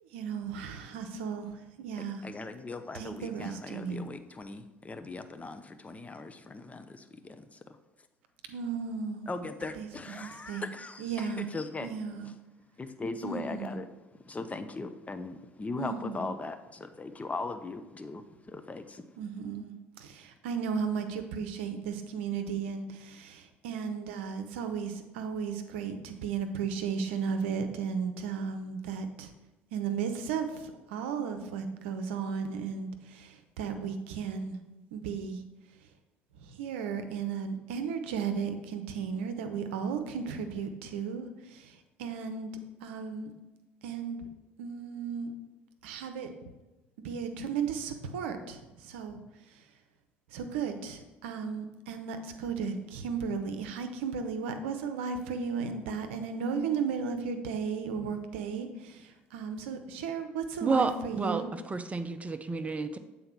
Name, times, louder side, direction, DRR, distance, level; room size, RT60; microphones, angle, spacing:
voice 1, 0.0-2.3 2.9-4.0 8.5-9.3 9.8-10.6 11.0-11.5 11.8-12.3 13.2-13.8 15.8-16.3 19.2-29.3 29.7-34.6 34.9-35.4 36.4-42.5 42.8-43.3 43.8-44.3 44.6-45.3 45.8-46.3 47.0-49.2 50.3-61.5, right 6 dB, 75° right, 7 dB, 0.7 m, -35 dB
voice 2, 2.0-7.8 9.3-11.9 12.2-12.3 12.8-13.9 14.1-19.0, left 3 dB, 20° left, 9 dB, 0.7 m, -39 dB
voice 3, 60.6-63.0, right 3 dB, 20° right, 9 dB, 0.6 m, -30 dB
7.8 x 4.1 x 4.4 m, 1.1 s
hypercardioid pair, 60°, 6 cm